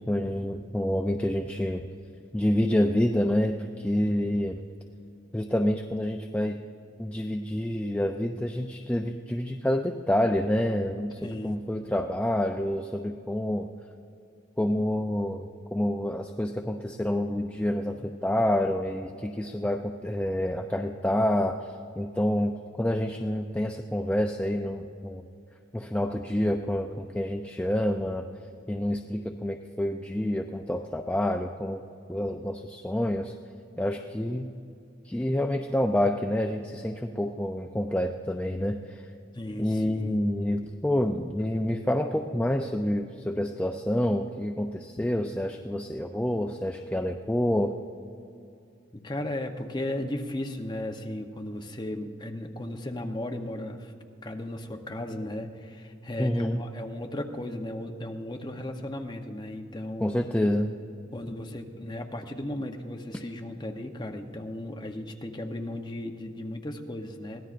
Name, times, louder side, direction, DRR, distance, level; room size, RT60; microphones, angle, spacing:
voice 1, 0.0-1.8 2.3-4.6 5.3-6.6 7.0-13.7 14.6-25.2 25.7-28.3 28.7-31.8 32.1-33.3 33.8-34.5 35.0-39.1 39.6-47.7 56.2-56.6 60.0-60.8, left 1 dB, 5° left, 4 dB, 0.3 m, -28 dB
voice 2, 11.2-11.6 39.3-40.2 48.9-53.9 54.2-60.2 61.1-67.5, left 1 dB, 20° left, 3 dB, 0.8 m, -35 dB
23.0 x 17.0 x 2.5 m, 2.5 s
head